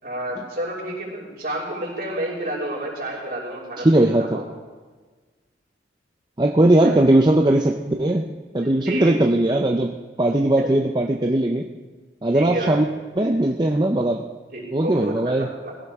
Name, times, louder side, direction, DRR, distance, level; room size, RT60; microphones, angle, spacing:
voice 1, 0.0-4.5 6.8-7.0 7.8-8.1 8.6-9.1 10.5-10.7 12.3-12.8 14.5-15.8, right 1 dB, 50° right, -4 dB, 5.9 m, -30 dB
voice 2, 3.8-4.4 6.4-8.3 8.5-11.6 12.2-12.9 13.2-14.2 14.7-15.5, right 1 dB, 25° right, 2 dB, 0.6 m, -19 dB
20.5 x 16.5 x 3.6 m, 1.4 s
head